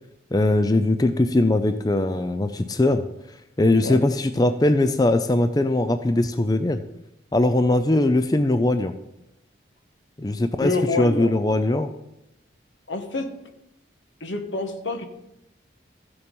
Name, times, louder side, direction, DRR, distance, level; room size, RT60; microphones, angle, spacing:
voice 1, 0.3-3.0 3.6-6.8 7.3-8.9 10.2-11.9, left 2 dB, 20° left, 9 dB, 0.4 m, -20 dB
voice 2, 10.6-11.3 12.9-13.3 14.2-15.1, left 2 dB, 80° left, 6 dB, 1.4 m, -27 dB
14.5 x 6.9 x 5.4 m, 0.86 s
head